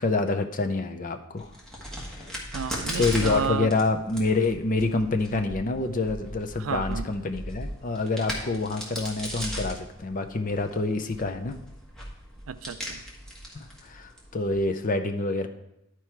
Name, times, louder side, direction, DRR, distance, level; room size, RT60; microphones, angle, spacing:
voice 1, 0.0-1.5 2.1-2.3 3.0-11.6 13.5-15.5, left 3 dB, 35° left, 6 dB, 0.5 m, -27 dB
Crack, 1.3-14.6, equal, 5° left, 1.4 m, -37 dB
voice 2, 2.5-3.7 6.6-7.1 12.5-13.0, right 6 dB, 65° right, 12 dB, 0.4 m, -32 dB
11.5 x 4.5 x 4.5 m, 0.85 s
head